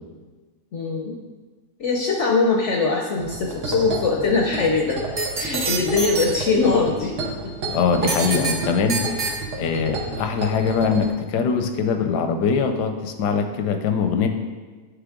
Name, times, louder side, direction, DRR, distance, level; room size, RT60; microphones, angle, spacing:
voice 1, 0.7-1.2 1.8-5.0 5.4-7.1 7.6-7.7, left 4 dB, 65° left, 0 dB, 0.7 m, -21 dB
sound 1, 3.2-11.1, right 2 dB, 80° right, 1.6 m, -31 dB
sound 2, 5.2-6.3 8.1-8.5 8.9-9.3, right 4 dB, 45° right, 0.7 m, -24 dB
voice 2, 7.7-9.0 9.6-14.3, left 5 dB, 80° left, 6 dB, 1.2 m, -22 dB
9.6 x 3.3 x 3.6 m, 1.3 s
omnidirectional pair, 1.8 m